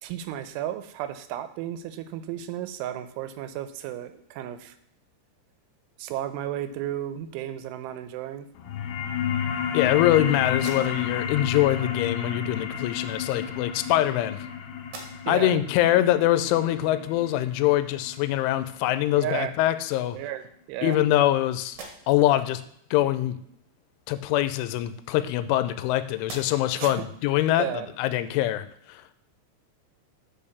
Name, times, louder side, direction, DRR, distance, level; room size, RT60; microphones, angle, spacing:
voice 1, 0.0-4.8 6.0-8.5 15.3-15.6 19.2-19.6 20.1-21.0 26.8-27.1 27.6-27.9, right 11 dB, 90° right, 11 dB, 3.2 m, -33 dB
sound 1, 8.6-19.7, left 8 dB, 75° left, 2.7 m, -32 dB
voice 2, 9.7-14.4 15.3-20.2 20.8-21.8 22.1-22.6 22.9-23.4 24.1-29.1, left 13 dB, 90° left, 13 dB, 3.1 m, -24 dB
sound 2, 10.5-11.4 12.5-12.7 13.6-14.5 14.8-15.5 16.0-16.1 18.8-18.9 19.3-20.0 20.6-21.3 21.6-22.4 24.4-25.8 26.2-26.9, right 3 dB, 60° right, 2.2 m, -47 dB
8.7 x 5.5 x 7.0 m, 0.68 s
omnidirectional pair, 5.4 m